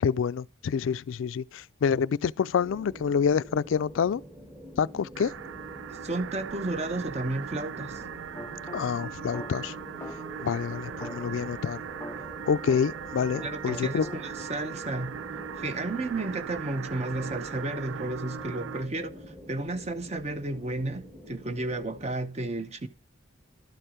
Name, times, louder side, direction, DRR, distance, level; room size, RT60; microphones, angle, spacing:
voice 1, 0.0-4.2 4.8-5.3 8.7-9.7 10.4-11.8 12.5-14.1, left 6 dB, 80° left, 0.3 m, -27 dB
sound 1, 2.6-22.2, equal, 10° right, 1.3 m, -46 dB
sound 2, 5.1-18.9, right 7 dB, 75° right, 0.3 m, -40 dB
voice 2, 5.9-8.0 13.4-15.3 15.6-22.9, right 2 dB, 35° right, 0.7 m, -33 dB
sound 3, 8.3-10.5 11.0-13.1 13.3-14.5, left 1 dB, 10° left, 0.4 m, -44 dB
12.0 x 4.5 x 5.0 m
head